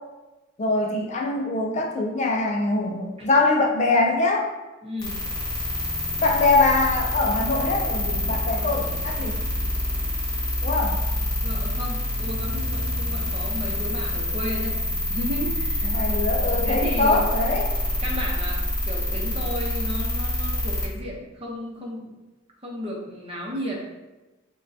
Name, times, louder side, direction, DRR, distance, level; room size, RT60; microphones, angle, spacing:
voice 1, 0.6-4.5 6.2-9.4 10.6-11.0 15.8-17.6, left 3 dB, 35° left, 1 dB, 0.4 m, -23 dB
voice 2, 4.8-5.3 8.5-9.0 11.4-16.2 16.6-17.2 18.0-22.1 22.6-23.8, left 1 dB, 30° right, -2 dB, 0.7 m, -34 dB
sound 1, 5.0-20.9, left 1 dB, 20° left, 1.0 m, -26 dB
6.0 x 2.2 x 2.7 m, 1.1 s
head